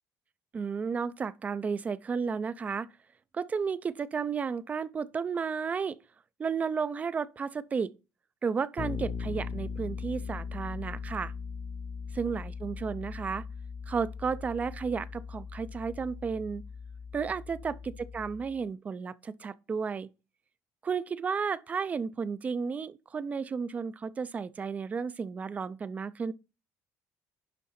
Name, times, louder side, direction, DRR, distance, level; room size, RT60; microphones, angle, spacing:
voice 1, 0.5-2.9 3.3-6.0 6.4-7.9 8.4-11.3 12.1-13.5 13.9-16.6 17.1-20.1 20.8-26.3, right 5 dB, 20° right, 0.4 m, -33 dB
Bass guitar, 8.8-18.6, left 5 dB, 35° left, 0.9 m, -39 dB
11.0 x 3.7 x 5.7 m
cardioid pair, 165°, 7 cm